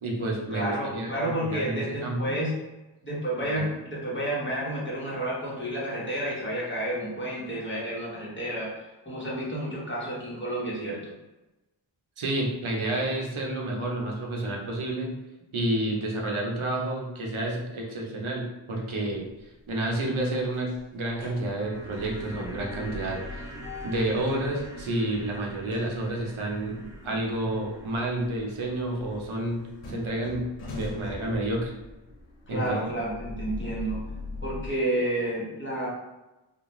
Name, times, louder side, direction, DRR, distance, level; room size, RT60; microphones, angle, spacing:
voice 1, 0.0-2.4 3.5-3.6 12.2-15.1 15.5-19.3 19.7-23.5 23.8-26.8 27.0-29.6 29.9-30.4 30.7-31.7 32.5-32.8, right 1 dB, 75° right, -1 dB, 0.7 m, -30 dB
voice 2, 0.5-2.5 3.0-11.1 32.5-34.0 34.4-35.9, right 1 dB, 25° left, -6 dB, 0.9 m, -30 dB
sound 1, 19.2-19.7 20.1-34.7, left 2 dB, 90° left, 0.7 m, -42 dB
sound 2, 21.3-31.4 31.6-31.7, right 1 dB, 5° right, 0.4 m, -46 dB
2.4 x 2.1 x 3.0 m, 1.0 s
wide cardioid pair, 65°, 49 cm